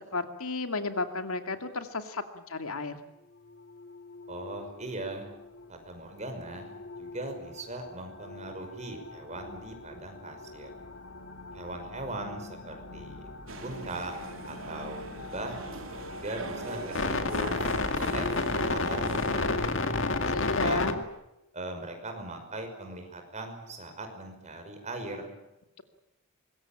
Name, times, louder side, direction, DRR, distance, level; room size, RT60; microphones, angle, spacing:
voice 1, 0.1-3.0 20.0-20.9, left 3 dB, 85° left, 7 dB, 2.4 m, -33 dB
sound 1, 3.8-4.7 5.3-5.6 6.4-21.0, left 3 dB, 60° left, 2.1 m, -34 dB
voice 2, 4.3-5.3 5.7-6.7 7.0-10.7 11.5-13.3 13.6-14.1 14.5-15.6 16.1-17.6 18.0-18.3 18.7-19.7 20.4-20.9 21.5-25.3, right 2 dB, 30° right, 4 dB, 5.7 m, -39 dB
sound 2, 13.5-19.9, right 3 dB, 65° right, 3.3 m, -42 dB
24.5 x 22.0 x 8.8 m, 0.91 s
head